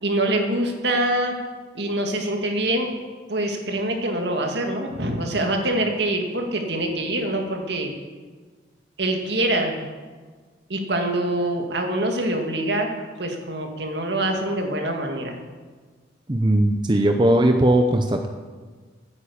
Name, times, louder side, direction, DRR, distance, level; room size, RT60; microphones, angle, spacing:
voice 1, 0.0-1.4 1.7-2.9 3.3-7.9 9.0-9.8 10.7-12.9 13.2-15.3, right 1 dB, 65° right, 3 dB, 2.2 m, -24 dB
voice 2, 16.3-18.3, right 1 dB, 25° right, 5 dB, 0.7 m, -18 dB
12.5 x 9.8 x 8.6 m, 1.5 s
head